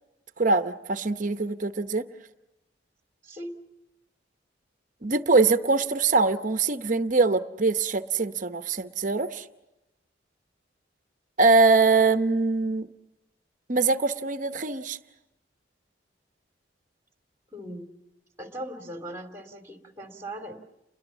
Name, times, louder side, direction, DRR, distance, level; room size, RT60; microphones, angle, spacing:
voice 1, 0.4-2.0 5.0-9.5 11.4-12.9 13.7-15.0, right 3 dB, 45° right, 9 dB, 0.8 m, -23 dB
voice 2, 3.2-3.6 17.5-17.9 18.4-20.5, right 1 dB, 15° right, 5 dB, 2.6 m, -39 dB
30.0 x 22.0 x 7.2 m, 0.93 s
head